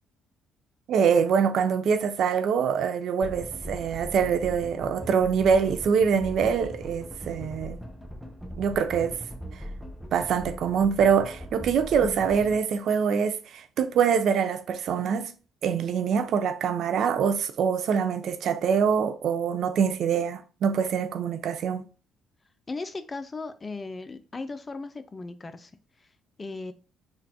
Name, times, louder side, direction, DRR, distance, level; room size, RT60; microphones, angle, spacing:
voice 1, 0.9-7.8 8.6-9.2 10.1-15.3 15.6-21.8, right 7 dB, 65° right, 0.4 m, -24 dB
sound 1, 3.2-12.6, equal, ahead, 0.8 m, -40 dB
voice 2, 22.7-25.7 26.4-26.7, left 3 dB, 30° left, 0.5 m, -37 dB
3.8 x 2.4 x 2.7 m
hypercardioid pair, 55°, 0 cm